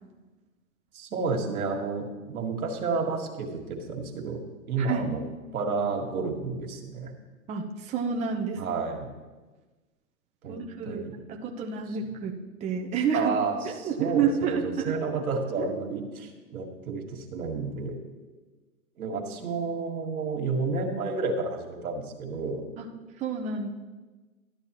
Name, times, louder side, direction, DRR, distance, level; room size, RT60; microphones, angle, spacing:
voice 1, 0.9-4.4 4.7-5.2 5.5-7.1 8.6-9.1 10.4-10.6 10.9-11.1 13.1-17.9 19.0-22.6, right 4 dB, 80° right, 3 dB, 1.8 m, -31 dB
voice 2, 4.8-5.1 7.5-8.6 10.4-11.0 11.3-12.3 12.6-13.3 13.6-14.9 15.6-15.7 22.8-22.9 23.2-23.7, right 6 dB, 15° right, 1 dB, 0.6 m, -29 dB
12.5 x 9.3 x 3.0 m, 1.2 s
hypercardioid pair, 120°, 43 cm